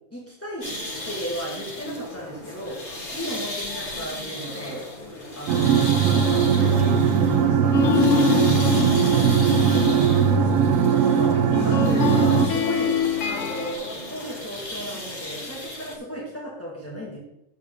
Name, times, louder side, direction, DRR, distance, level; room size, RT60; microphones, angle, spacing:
voice 1, 0.1-0.7 1.1-2.8 3.1-4.9 5.4-9.3 9.7-10.5 10.9-17.2, equal, 10° left, -5 dB, 2.2 m, -35 dB
sound 1, 0.6-16.0, left 1 dB, 40° left, 1.6 m, -35 dB
sound 2, 5.5-12.5, right 7 dB, 80° right, 1.1 m, -19 dB
sound 3, 7.7-13.7, left 7 dB, 75° left, 1.2 m, -25 dB
7.8 x 7.4 x 3.9 m, 0.84 s
omnidirectional pair, 1.4 m